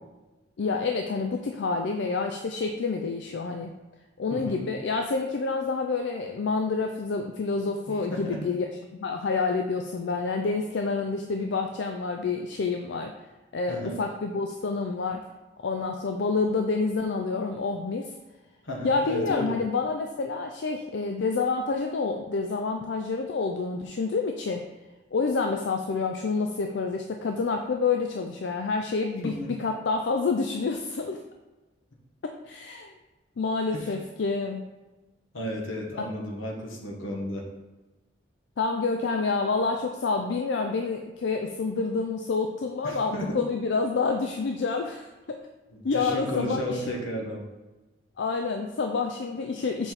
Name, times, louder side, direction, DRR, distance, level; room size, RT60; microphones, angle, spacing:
voice 1, 0.6-3.7 4.2-13.1 13.5-15.2 15.6-18.1 18.8-24.7 25.1-31.2 32.4-32.9 33.4-34.7 38.6-45.4 45.8-46.8 48.2-49.9, left 4 dB, 65° left, 4 dB, 0.4 m, -28 dB
voice 2, 4.3-4.6 7.9-8.4 13.7-14.0 18.6-19.6 29.2-29.5 33.7-33.9 35.3-37.5 42.8-43.4 45.7-47.4, equal, 85° left, 0 dB, 1.3 m, -33 dB
6.8 x 4.2 x 4.1 m, 1.1 s
head